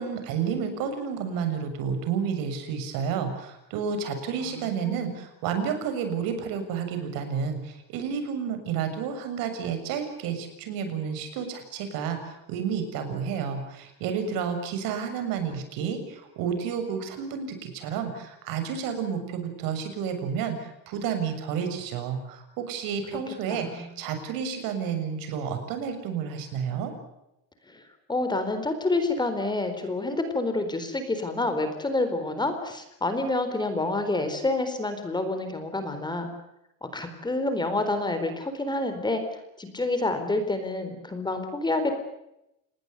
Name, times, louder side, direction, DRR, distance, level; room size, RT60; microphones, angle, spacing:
voice 1, 0.0-26.9, right 7 dB, 65° right, 8 dB, 7.0 m, -31 dB
voice 2, 4.4-5.0 23.5-23.9 27.7-27.8 28.1-36.3 36.8-39.2 39.6-41.9, left 2 dB, 10° left, 8 dB, 4.2 m, -28 dB
29.0 x 20.0 x 6.8 m, 0.85 s
cardioid pair, 140°, 37 cm